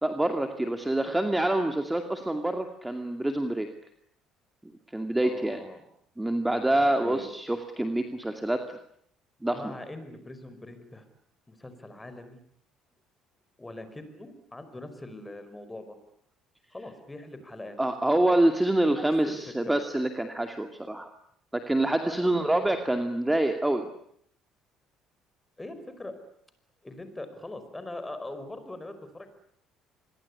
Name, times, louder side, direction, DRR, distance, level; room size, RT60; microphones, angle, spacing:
voice 1, 0.0-3.7 4.9-5.6 6.2-8.6 9.4-9.8 17.8-21.1 21.5-23.9, right 1 dB, 10° right, 6 dB, 2.4 m, -26 dB
voice 2, 5.2-5.8 6.8-7.3 9.5-11.0 11.5-12.4 13.6-16.0 16.7-17.8 19.0-19.8 22.0-22.4 25.6-26.2 26.8-29.3, left 2 dB, 10° left, 10 dB, 5.1 m, -42 dB
26.5 x 22.0 x 9.9 m, 0.68 s
cardioid pair, 110°, 0 cm